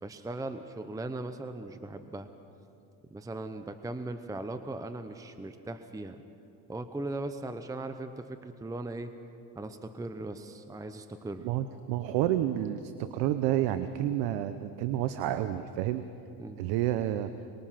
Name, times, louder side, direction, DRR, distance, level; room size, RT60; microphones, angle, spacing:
voice 1, 0.0-2.3 3.1-6.2 6.7-9.1 9.5-11.5 16.4-16.6, right 2 dB, 10° right, 9 dB, 0.7 m, -38 dB
voice 2, 11.4-16.0 16.6-17.3, right 12 dB, 80° right, 11 dB, 0.9 m, -29 dB
24.0 x 21.0 x 5.8 m, 2.7 s
cardioid pair, 110°, 43 cm